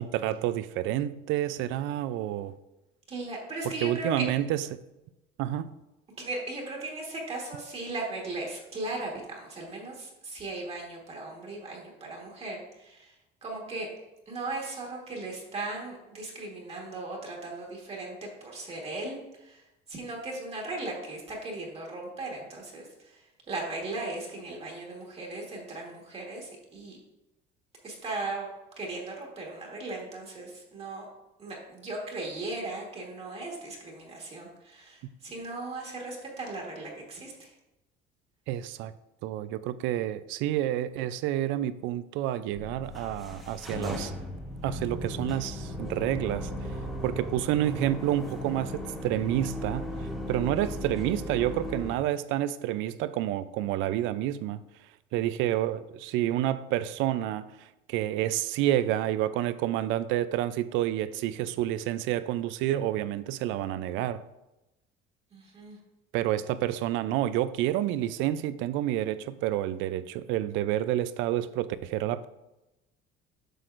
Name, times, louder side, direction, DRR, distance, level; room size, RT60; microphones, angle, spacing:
voice 1, 0.0-2.5 3.6-4.8 5.4-5.7 38.5-38.9 39.2-44.1 44.6-46.5 47.0-49.9 50.3-54.6 55.1-64.2 66.1-72.3, right 13 dB, 80° right, 0.4 m, -29 dB
voice 2, 3.1-4.1 6.2-13.1 13.4-13.9 14.3-27.0 27.8-28.5 28.8-31.1 31.4-37.5 65.3-65.8, right 2 dB, 30° right, 1.5 m, -37 dB
sound 1, 42.6-52.0, equal, ahead, 1.1 m, -36 dB
7.8 x 6.0 x 2.5 m
cardioid pair, 135°, 20 cm